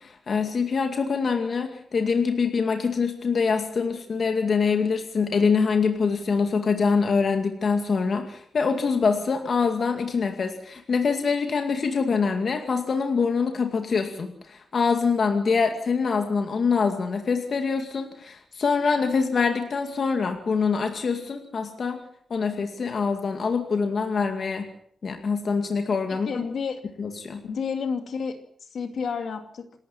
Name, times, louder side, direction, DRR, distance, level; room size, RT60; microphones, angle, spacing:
voice 1, 0.0-22.0 22.3-24.7 25.0-26.5 27.0-27.4, left 5 dB, 45° left, 5 dB, 2.3 m, -24 dB
voice 2, 26.3-26.8 27.4-28.4 28.6-29.7, left 6 dB, 65° left, 6 dB, 2.6 m, -30 dB
28.0 x 13.0 x 7.4 m, 0.62 s
wide cardioid pair, 150°, 0 cm